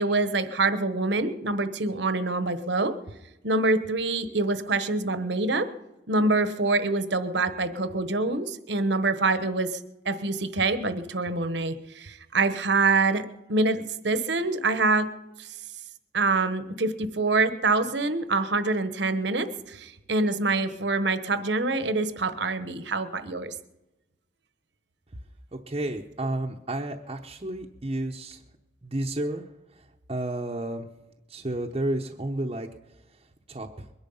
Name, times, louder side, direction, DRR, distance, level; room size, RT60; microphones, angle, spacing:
voice 1, 0.0-2.9 3.4-5.7 6.1-9.8 10.0-15.1 15.4-15.5 16.1-23.5, right 3 dB, 65° right, 11 dB, 1.2 m, -25 dB
voice 2, 25.7-28.4 28.8-30.9 31.3-33.2 33.5-33.9, right 1 dB, 30° right, 0 dB, 0.9 m, -32 dB
22.0 x 11.0 x 5.6 m, 1.0 s
head